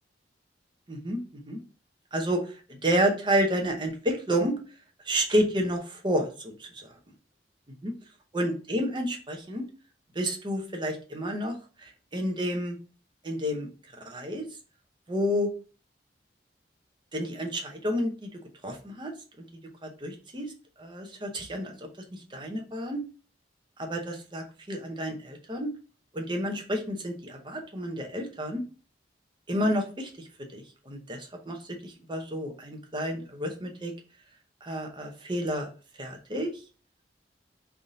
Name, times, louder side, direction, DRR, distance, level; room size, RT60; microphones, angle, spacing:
voice 1, 0.9-1.6 2.1-4.6 5.0-6.9 8.3-9.6 10.1-11.6 11.8-12.8 13.2-13.7 14.0-14.4 15.1-15.5 17.1-18.3 18.6-19.1 19.4-19.5 19.8-20.5 20.8-23.0 23.8-25.7 26.1-28.6 29.5-33.9 34.6-35.7 36.0-36.5, equal, 25° right, 2 dB, 0.7 m, -30 dB
3.5 x 2.7 x 3.7 m, 0.37 s
head